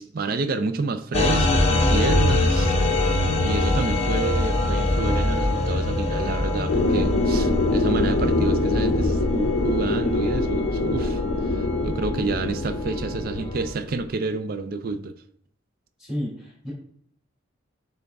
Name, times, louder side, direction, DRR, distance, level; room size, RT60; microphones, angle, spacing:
voice 1, 0.0-2.7 3.4-11.2 11.5-15.2, right 3 dB, 45° right, 10 dB, 0.4 m, -29 dB
sound 1, 1.1-13.7, left 2 dB, 30° left, 0.9 m, -24 dB
sound 2, 6.7-14.1, left 2 dB, 85° left, 0.5 m, -25 dB
voice 2, 16.0-16.7, equal, ahead, -5 dB, 2.5 m, -31 dB
7.8 x 3.5 x 3.5 m, 0.65 s
head